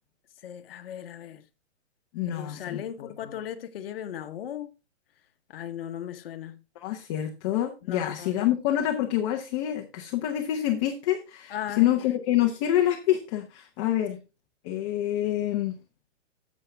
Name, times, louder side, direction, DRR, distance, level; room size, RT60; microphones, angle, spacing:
voice 1, 0.4-1.4 2.3-4.7 5.5-6.6 7.8-8.4 11.5-12.1 14.1-14.2, left 10 dB, 50° left, 1.1 m, -37 dB
voice 2, 2.1-3.1 6.8-14.2 14.6-15.8, left 12 dB, 25° left, 0.9 m, -27 dB
11.0 x 7.5 x 3.4 m
hypercardioid pair, 155°, 36 cm